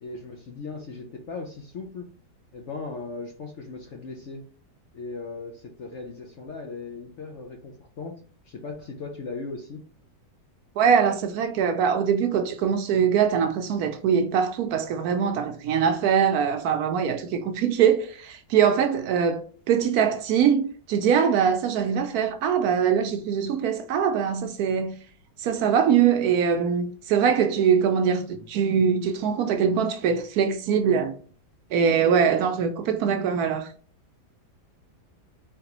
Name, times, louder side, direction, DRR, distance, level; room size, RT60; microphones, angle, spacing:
voice 1, 0.0-2.1 2.5-4.4 4.9-8.2 8.4-9.8, left 3 dB, 65° left, 0.8 m, -38 dB
voice 2, 10.8-25.0 25.4-31.1 31.7-33.7, right 7 dB, 70° right, 1.0 m, -22 dB
3.8 x 3.3 x 2.9 m
omnidirectional pair, 1.8 m